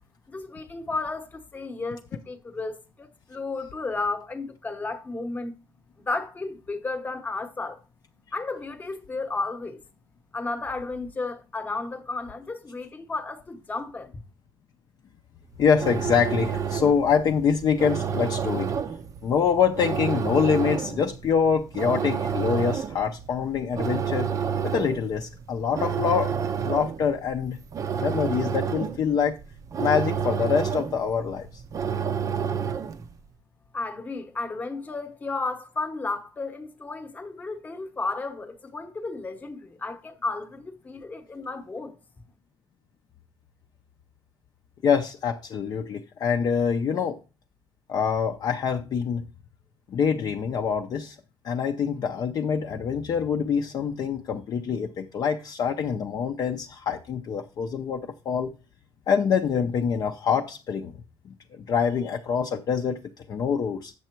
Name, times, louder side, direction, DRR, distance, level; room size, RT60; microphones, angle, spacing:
voice 1, 0.3-5.5 6.0-7.8 8.3-9.8 10.3-14.2 33.7-42.0, left 3 dB, 15° left, 1.0 m, -33 dB
sound 1, 15.5-33.1, right 7 dB, 35° right, 0.6 m, -30 dB
voice 2, 15.6-18.7 19.2-24.3 24.6-26.3 26.6-27.6 28.0-29.4 29.8-31.6 44.8-47.2 47.9-49.2 49.9-51.2 51.4-58.5 59.1-60.9 61.2-61.3 61.7-63.0 63.3-63.9, left 6 dB, 40° left, 0.6 m, -25 dB
8.4 x 6.7 x 4.5 m
cardioid pair, 180°, 10 cm